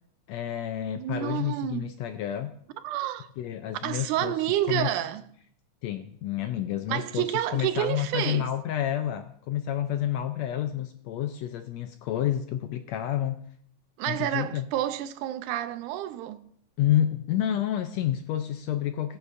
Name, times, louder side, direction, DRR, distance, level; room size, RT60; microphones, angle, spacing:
voice 1, 0.3-2.6 3.4-4.4 4.7-4.9 5.8-13.4 14.1-14.7 16.8-19.2, left 11 dB, 80° left, 1.6 m, -29 dB
voice 2, 1.0-1.9 2.8-3.3 3.8-5.2 6.9-8.5 14.0-16.4, right 13 dB, 85° right, 2.1 m, -29 dB
21.5 x 8.1 x 2.5 m
omnidirectional pair, 3.5 m